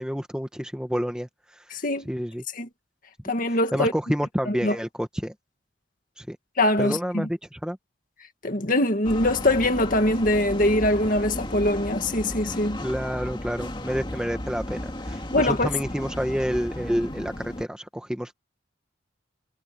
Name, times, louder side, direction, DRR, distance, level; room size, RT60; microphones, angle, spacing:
voice 1, 0.0-1.6 2.0-2.4 3.5-5.3 6.2-6.4 6.8-7.8 12.8-18.3, equal, 5° right, 1.5 m, -29 dB
voice 2, 1.7-2.1 2.6-2.7 3.3-3.9 4.5-4.8 6.6-7.2 8.4-12.8 15.3-15.7, left 1 dB, 45° left, 2.0 m, -23 dB
sound 1, 9.0-17.7, left 1 dB, 25° left, 2.4 m, -34 dB
head